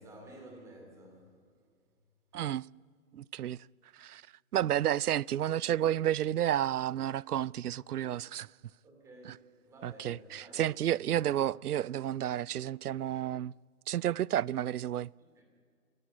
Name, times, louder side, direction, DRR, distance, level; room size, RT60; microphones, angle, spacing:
voice 1, 0.0-1.4 8.8-10.6 15.3-15.4, right 1 dB, 5° right, 2.6 m, -52 dB
voice 2, 2.3-2.7 3.1-3.6 3.9-4.2 4.5-8.5 9.8-13.5 13.9-15.1, right 11 dB, 80° right, 0.6 m, -31 dB
25.5 x 15.0 x 10.0 m
hypercardioid pair, 165°, 45 cm